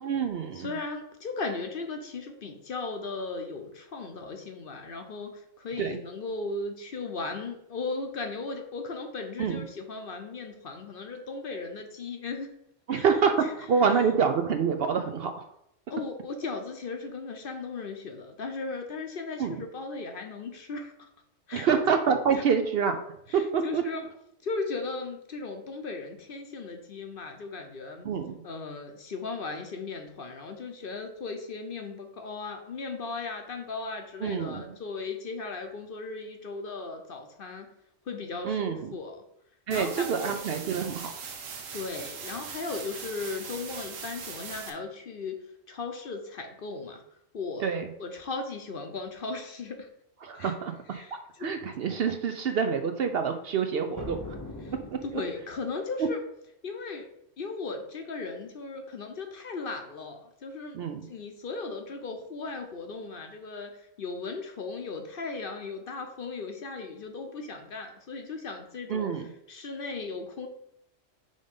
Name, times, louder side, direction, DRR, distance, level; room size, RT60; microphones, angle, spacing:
voice 1, 0.0-0.7 5.8-6.0 9.4-9.6 12.9-15.5 19.4-19.6 21.5-23.0 23.3-23.8 28.0-28.4 34.2-34.7 38.4-39.0 39.7-41.1 47.6-47.9 50.2-51.0 51.4-54.4 60.7-61.1 68.9-69.3, right 6 dB, 60° right, 7 dB, 0.7 m, -27 dB
voice 2, 0.5-12.5 12.9-13.1 13.4-13.5 15.9-21.1 21.5-21.7 22.3-22.4 23.3-24.1 24.4-28.1 28.4-37.7 38.0-39.2 39.7-40.3 41.7-45.4 45.7-47.0 47.3-47.7 48.0-49.9 50.3-50.5 50.9-51.5 54.6-54.7 55.0-56.2 56.6-57.1 57.4-69.1 69.5-70.5, left 3 dB, 50° left, 5 dB, 0.8 m, -37 dB
sound 1, 39.7-44.7, right 6 dB, 90° right, 1.2 m, -40 dB
sound 2, 54.0-55.7, left 2 dB, 20° left, 0.5 m, -41 dB
5.2 x 3.8 x 5.2 m, 0.78 s
omnidirectional pair, 1.3 m